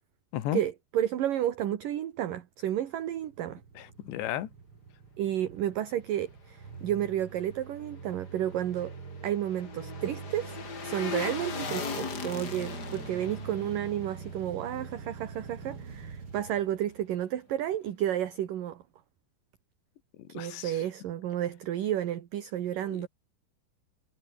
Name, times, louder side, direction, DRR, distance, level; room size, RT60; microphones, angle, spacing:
voice 1, 0.5-3.6 5.2-8.9 9.2-10.6 10.8-18.8 20.3-23.1, right 11 dB, 60° right, 3.0 m, -31 dB
sound 1, 3.0-17.4, right 5 dB, 35° right, 3.3 m, -45 dB
voice 2, 3.8-4.5 20.3-20.8 22.9-23.1, left 13 dB, 85° left, 3.9 m, -34 dB
sound 2, 8.3-15.5 15.8-15.9, left 5 dB, 35° left, 1.7 m, -39 dB
omnidirectional pair, 5.0 m